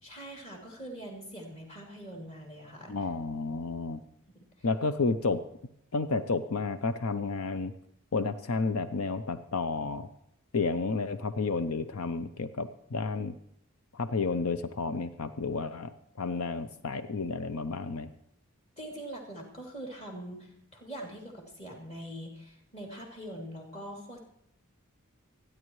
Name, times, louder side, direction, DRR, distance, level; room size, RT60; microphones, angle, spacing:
voice 1, 0.0-3.0 4.3-4.7 18.8-24.2, right 1 dB, 30° left, 0 dB, 3.0 m, -43 dB
voice 2, 2.9-4.0 4.6-5.4 5.9-7.7 8.1-10.1 10.5-13.3 13.9-18.1, left 4 dB, 85° left, 10 dB, 0.7 m, -31 dB
26.5 x 10.0 x 3.2 m, 0.75 s
head